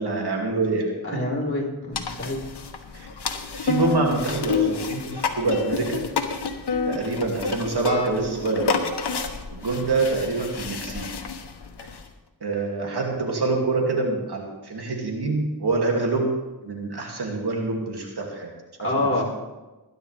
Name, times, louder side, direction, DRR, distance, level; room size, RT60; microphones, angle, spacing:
voice 1, 0.0-1.2 2.9-3.1 3.5-6.0 6.9-8.8 9.5-11.1 12.4-16.3 16.6-18.5 18.8-19.3, right 3 dB, 75° right, 0 dB, 2.6 m, -26 dB
voice 2, 1.0-2.4 18.8-19.3, left 2 dB, 30° left, -3 dB, 4.8 m, -26 dB
sound 1, 1.9-12.1, left 5 dB, 90° left, 1.2 m, -29 dB
20.5 x 10.5 x 3.4 m, 1.1 s
cardioid pair, 50°, 39 cm